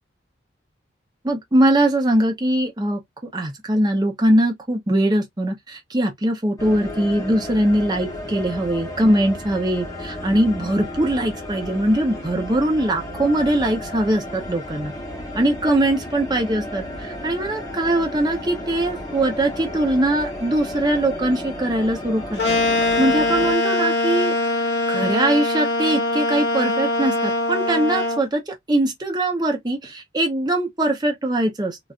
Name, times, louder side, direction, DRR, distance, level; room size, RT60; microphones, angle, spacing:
voice 1, 1.2-3.0 3.3-14.9 15.3-24.4 24.9-31.8, right 1 dB, 20° right, 0.7 m, -21 dB
sound 1, 6.6-23.5, left 1 dB, 20° left, 0.9 m, -33 dB
sound 2, 22.4-28.2, left 2 dB, 65° left, 0.7 m, -22 dB
3.1 x 2.5 x 2.4 m
head